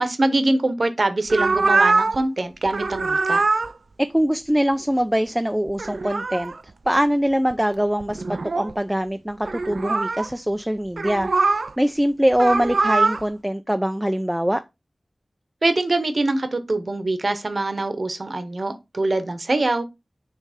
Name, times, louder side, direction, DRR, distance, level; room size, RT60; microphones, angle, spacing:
voice 1, 0.0-3.4 15.6-19.8, right 2 dB, 55° right, 1.0 m, -23 dB
sound 1, 1.3-2.2 2.7-3.7 5.7-6.6 7.5-7.6 8.0-8.7 9.5-10.3 11.0-11.7 12.3-13.2, right 3 dB, 75° right, 0.4 m, -22 dB
voice 2, 4.0-6.5 6.9-14.6, equal, 10° right, 0.4 m, -23 dB
6.4 x 3.3 x 4.9 m
wide cardioid pair, 75°, 0 cm